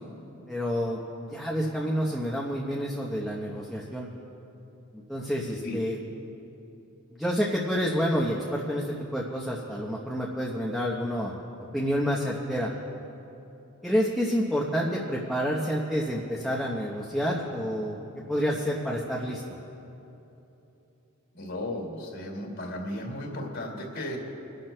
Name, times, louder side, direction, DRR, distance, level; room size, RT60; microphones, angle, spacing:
voice 1, 0.5-4.1 5.1-6.0 7.1-11.3 11.7-12.7 13.8-19.4, equal, ahead, -4 dB, 0.8 m, -29 dB
voice 2, 21.3-24.2, left 1 dB, 65° left, 0 dB, 2.4 m, -35 dB
28.0 x 12.0 x 2.2 m, 3.0 s
head